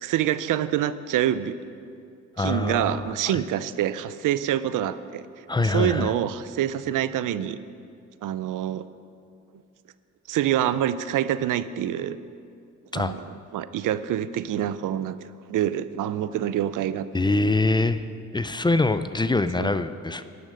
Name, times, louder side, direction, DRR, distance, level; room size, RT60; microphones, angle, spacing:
voice 1, 0.0-1.6 2.4-5.3 5.6-7.6 8.2-8.8 10.3-12.2 12.9-13.3 13.5-17.3 19.6-19.7, right 11 dB, 90° right, 15 dB, 0.6 m, -26 dB
voice 2, 2.4-3.4 5.5-6.1 12.9-13.1 17.1-18.0 18.3-20.2, left 2 dB, 15° left, 12 dB, 0.5 m, -24 dB
11.5 x 11.0 x 6.5 m, 2.4 s
cardioid pair, 90°, 31 cm